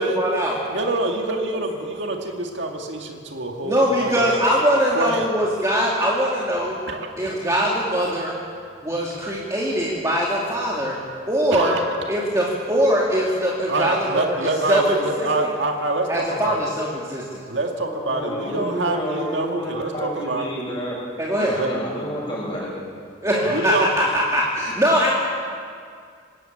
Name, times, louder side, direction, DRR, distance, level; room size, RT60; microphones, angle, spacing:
voice 1, 0.0-0.6 1.3-1.4 3.6-6.8 7.2-8.4 8.8-11.0 11.3-11.7 12.1-14.8 15.2-15.3 16.1-17.4 21.2-21.6 23.2-25.2, equal, 15° right, -4 dB, 2.5 m, -22 dB
voice 2, 0.7-4.4 4.9-5.3 6.9-7.1 11.5-12.2 13.7-16.6 17.5-20.5 21.5-21.7 23.5-24.0, right 2 dB, 65° right, 2 dB, 2.0 m, -25 dB
voice 3, 17.8-21.0 21.4-22.7, equal, 25° left, -5 dB, 8.0 m, -29 dB
26.0 x 13.5 x 8.6 m, 2.2 s
head